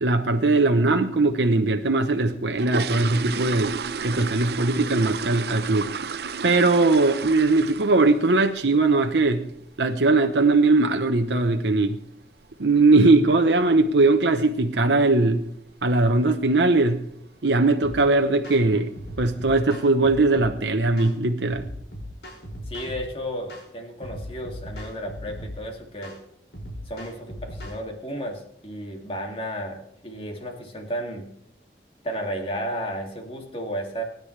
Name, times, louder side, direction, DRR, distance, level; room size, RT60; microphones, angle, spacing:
voice 1, 0.0-3.7 4.0-5.9 6.4-9.5 9.8-12.0 12.6-15.5 15.8-17.0 17.4-18.9 19.2-21.7, right 3 dB, 90° right, 0.9 m, -20 dB
sound 1, 2.2-8.1 8.4-8.7 9.0-9.1 9.5-9.6 10.0-10.2 10.5-10.6 11.2-11.3 11.5-11.7 12.2-12.5 12.8-12.9 13.3-13.5 13.8-13.9 14.3-14.4 15.1-15.4 15.7-16.0 16.4-16.5 16.9-17.0 17.8-17.9 18.3-18.8 19.3-19.4, right 5 dB, 70° right, 0.6 m, -32 dB
sound 2, 17.8-18.0 18.4-18.6 19.0-20.6 21.0-21.2 21.5-23.1 23.5-23.7 24.0-25.6 26.0-26.2 26.5-27.8, equal, 85° left, 5.6 m, -38 dB
voice 2, 22.7-26.1 26.9-31.3 32.0-34.0, equal, 30° left, 2.5 m, -33 dB
24.0 x 10.5 x 3.3 m
head